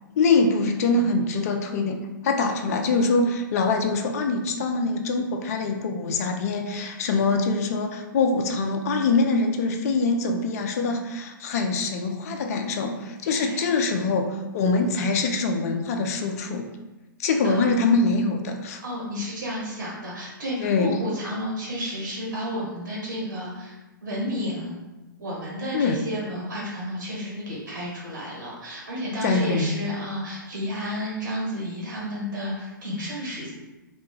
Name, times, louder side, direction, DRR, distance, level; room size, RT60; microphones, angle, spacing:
voice 1, 0.2-2.0 2.2-16.7 17.2-18.8 20.6-20.9 25.7-26.0 29.2-29.7, left 3 dB, 45° left, 4 dB, 0.4 m, -24 dB
voice 2, 13.2-13.7 17.4-17.7 18.8-23.8 24.0-24.8 25.2-33.5, equal, 60° right, -5 dB, 1.2 m, -31 dB
2.2 x 2.2 x 3.0 m, 1.1 s
figure-of-eight pair, 115°, 11 cm